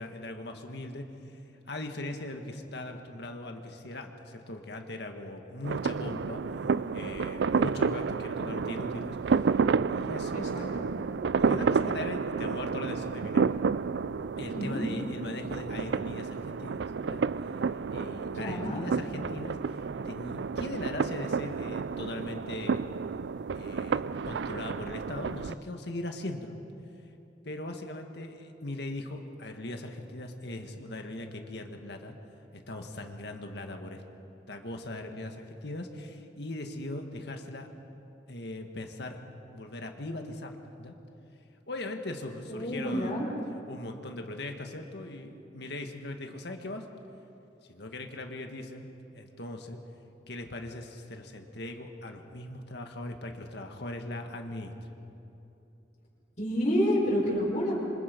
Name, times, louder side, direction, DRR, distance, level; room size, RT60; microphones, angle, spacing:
voice 1, 0.0-1.4 1.7-6.4 6.9-10.4 11.4-13.5 14.4-17.2 17.9-22.8 23.5-26.6 27.4-32.2 32.7-34.0 34.5-37.7 38.3-39.2 39.5-40.9 41.7-43.2 43.7-46.9 47.7-49.8 50.3-54.7, left 1 dB, 70° left, 4 dB, 1.9 m, -39 dB
sound 1, 5.6-25.5, right 5 dB, 75° right, 0.4 m, -30 dB
voice 2, 10.3-10.9 14.5-14.8 18.3-18.8 42.5-43.3 56.4-57.7, equal, 45° left, -5 dB, 5.0 m, -29 dB
27.0 x 25.5 x 5.4 m, 2.9 s
head